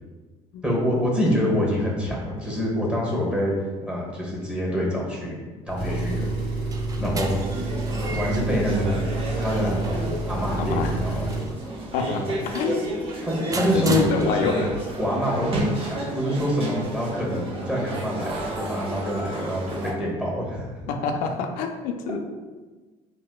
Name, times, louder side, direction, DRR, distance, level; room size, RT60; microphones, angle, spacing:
voice 1, 0.6-3.5 3.9-5.4 5.7-6.3 7.0-7.4 8.1-9.0 9.4-9.8 10.2-11.3 12.1-12.3 13.2-14.1 14.4-14.6 15.0-20.9, equal, 10° right, -4 dB, 1.1 m, -26 dB
Engine, 5.7-11.5, right 2 dB, 80° right, 0.8 m, -29 dB
sound 1, 6.4-14.8, right 3 dB, 25° right, 0.4 m, -38 dB
sound 2, 7.3-19.9, right 1 dB, 40° right, 0.9 m, -32 dB
voice 2, 10.6-10.9 11.9-12.9 13.7-14.7 20.9-22.2, left 5 dB, 75° left, 4 dB, 0.4 m, -26 dB
4.3 x 2.1 x 2.3 m, 1.3 s
supercardioid pair, 85°, 14 cm